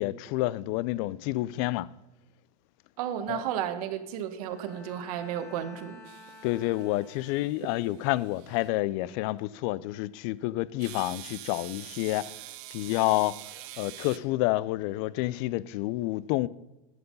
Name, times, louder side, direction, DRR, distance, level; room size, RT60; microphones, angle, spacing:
voice 1, 0.0-1.9 3.3-3.4 6.4-12.3 12.7-13.4 13.8-16.5, left 17 dB, 60° left, 0.4 m, -29 dB
voice 2, 3.0-6.0, right 10 dB, 75° right, 1.2 m, -33 dB
Bowed string instrument, 4.4-7.6, left 2 dB, 15° left, 2.5 m, -51 dB
sound 1, 6.0-8.7 10.8-14.2, right 18 dB, 60° right, 0.6 m, -45 dB
11.0 x 6.9 x 5.4 m
supercardioid pair, 120°, 19 cm